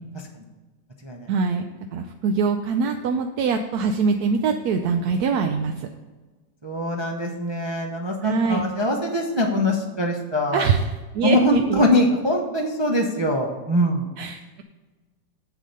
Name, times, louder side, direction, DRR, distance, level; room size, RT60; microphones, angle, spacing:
voice 1, 1.3-1.6 1.9-5.9 8.2-8.6 10.5-11.8 14.2-14.6, right 5 dB, 70° right, 6 dB, 1.0 m, -23 dB
voice 2, 6.6-10.6 11.2-14.1, left 1 dB, 45° right, 1 dB, 0.3 m, -23 dB
7.8 x 7.3 x 5.4 m, 1.3 s
omnidirectional pair, 2.0 m